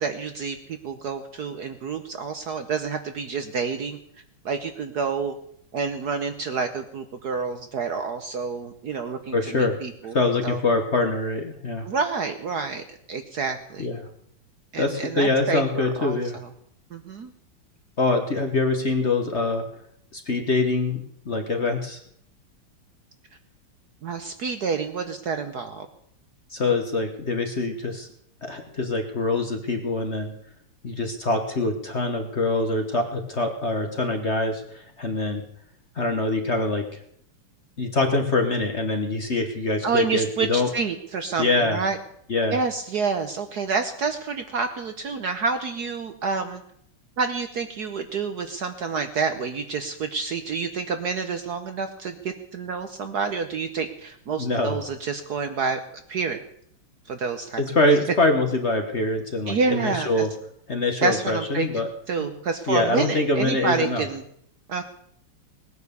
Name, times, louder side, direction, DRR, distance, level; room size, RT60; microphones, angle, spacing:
voice 1, 0.0-4.0 4.4-5.3 5.7-10.2 10.4-10.6 11.8-12.8 13.1-13.9 14.7-16.5 16.9-17.3 24.0-25.9 39.8-42.0 42.5-46.6 47.2-55.8 56.1-56.4 57.1-57.6 59.5-60.3 61.0-64.2 64.7-64.8, right 5 dB, 60° right, 8 dB, 1.2 m, -28 dB
voice 2, 9.3-9.8 10.1-11.9 13.8-14.1 14.8-16.4 18.0-19.6 20.1-22.0 26.5-28.1 28.4-30.3 30.8-35.4 36.0-36.9 37.8-40.7 41.4-41.8 42.3-42.6 54.4-54.8 57.6-60.3 60.7-61.9 62.7-64.1, left 2 dB, 35° left, 5 dB, 1.3 m, -24 dB
18.5 x 9.5 x 6.9 m, 0.68 s
omnidirectional pair, 2.4 m